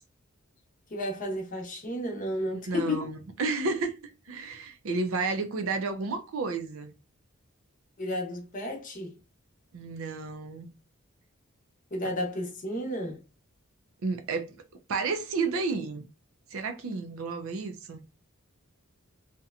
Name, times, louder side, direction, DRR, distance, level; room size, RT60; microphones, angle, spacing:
voice 1, 0.9-3.1 8.0-9.2 11.9-13.2, left 1 dB, 40° left, 0.7 m, -32 dB
voice 2, 2.7-3.9 4.3-6.9 9.7-10.7 14.0-14.6 14.9-16.1 16.5-18.0, right 4 dB, 70° right, 0.5 m, -31 dB
2.8 x 2.1 x 2.4 m
head